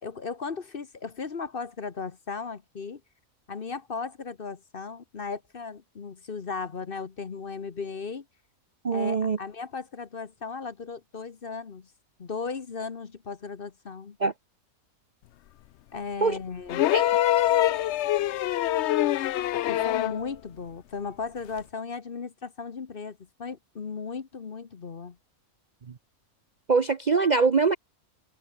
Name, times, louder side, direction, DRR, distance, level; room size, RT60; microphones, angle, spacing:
voice 1, 0.0-3.0 3.5-8.2 8.9-11.9 12.2-14.2 15.9-16.9 19.5-25.2, left 5 dB, 40° left, 1.1 m, -36 dB
voice 2, 8.8-9.4 14.2-14.3 16.2-16.4 16.9-17.1 26.7-27.8, right 4 dB, 40° right, 0.7 m, -23 dB
sound 1, 16.7-20.2 21.6-21.7, left 13 dB, 65° left, 0.7 m, -24 dB
omnidirectional pair, 1.5 m